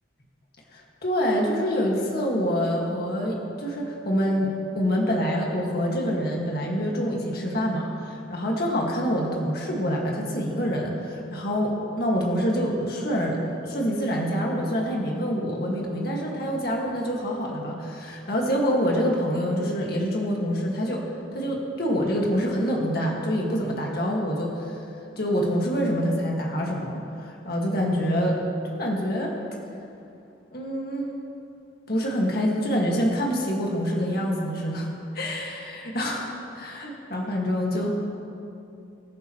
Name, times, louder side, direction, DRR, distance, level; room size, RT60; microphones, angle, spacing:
voice 1, 0.7-21.1 21.3-24.8 25.2-28.4 28.8-29.4 30.5-31.1 31.9-37.9, equal, 50° left, -2 dB, 1.9 m, -26 dB
24.5 x 10.5 x 3.1 m, 2.8 s
head